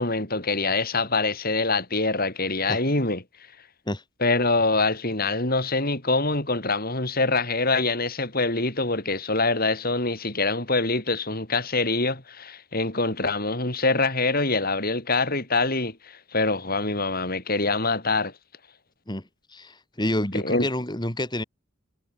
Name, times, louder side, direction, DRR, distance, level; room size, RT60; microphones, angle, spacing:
voice 1, 0.0-3.2 4.2-18.3 20.3-20.7, left 3 dB, 45° left, 5.5 m, -25 dB
voice 2, 19.1-21.4, left 1 dB, 20° left, 3.9 m, -29 dB
head